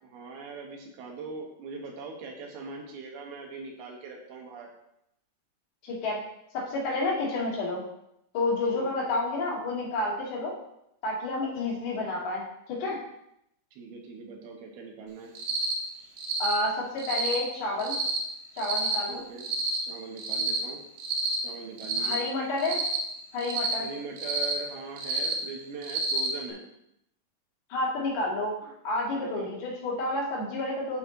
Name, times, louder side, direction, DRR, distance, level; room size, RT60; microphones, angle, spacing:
voice 1, 0.0-4.7 8.7-8.9 13.7-15.3 19.0-19.5 19.8-20.8 21.4-22.2 23.8-26.6 29.1-29.6, right 4 dB, 85° right, 1 dB, 3.3 m, -41 dB
voice 2, 5.8-6.2 6.5-7.8 8.3-10.5 11.0-12.4 12.7-13.0 16.4-17.9 18.6-19.2 22.0-22.8 23.3-23.9 27.7-31.0, left 2 dB, 80° left, -5 dB, 4.1 m, -30 dB
Cricket, 15.3-15.7 16.2-16.5 17.0-17.4 17.8-18.2 18.6-19.0 19.4-19.8 20.2-20.6 21.0-21.4 21.8-22.2 22.6-23.0 23.4-23.7 24.2-24.5 25.0-25.3 25.8-26.3, right 4 dB, 65° right, 2.3 m, -29 dB
11.0 x 4.6 x 3.8 m, 0.79 s
omnidirectional pair, 4.4 m